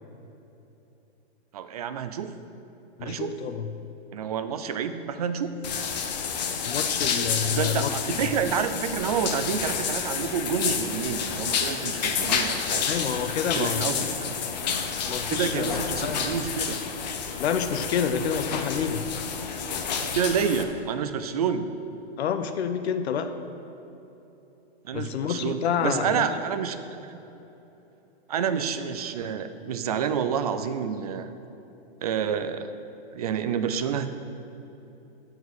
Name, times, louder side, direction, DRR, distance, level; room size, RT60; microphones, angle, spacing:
voice 1, 1.5-2.3 3.0-3.4 4.1-5.5 7.5-12.8 13.5-14.4 15.3-16.8 20.0-21.7 24.8-27.2 28.3-31.3 32.0-32.7 33.1-34.1, right 7 dB, 40° right, 10 dB, 0.4 m, -29 dB
voice 2, 3.0-3.7 6.6-7.9 12.9-14.1 15.1-15.7 16.0-16.2 17.4-19.0 22.2-23.3 24.9-26.2, left 7 dB, 85° left, 9 dB, 0.8 m, -28 dB
sound 1, 5.6-20.6, left 6 dB, 40° left, 0.8 m, -29 dB
11.0 x 4.9 x 8.2 m, 3.0 s
hypercardioid pair, 175°, 32 cm